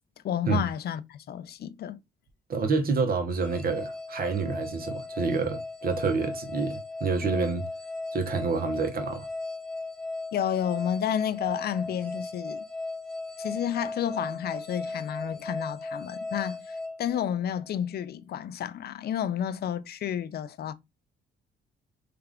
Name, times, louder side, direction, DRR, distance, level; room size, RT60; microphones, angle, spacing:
voice 1, 0.2-2.0 10.3-12.6 13.4-20.7, left 9 dB, 55° left, 0.4 m, -31 dB
voice 2, 2.5-7.7 8.1-9.3, right 4 dB, 50° right, 0.9 m, -28 dB
sound 1, 3.3-17.7, left 2 dB, 5° left, 1.0 m, -37 dB
3.3 x 2.3 x 3.5 m
cardioid pair, 90°, 20 cm